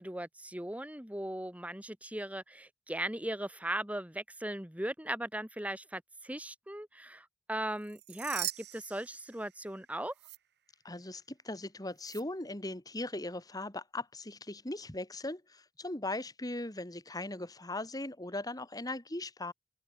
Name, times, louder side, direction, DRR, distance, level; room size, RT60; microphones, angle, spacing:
voice 1, 0.0-10.1, right 1 dB, 10° right, 2.0 m, -38 dB
sound 1, 7.8-9.8 10.1-10.4 12.0-12.2, right 14 dB, 60° right, 3.0 m, -41 dB
voice 2, 10.8-19.5, left 2 dB, 20° left, 2.1 m, -39 dB
open air
head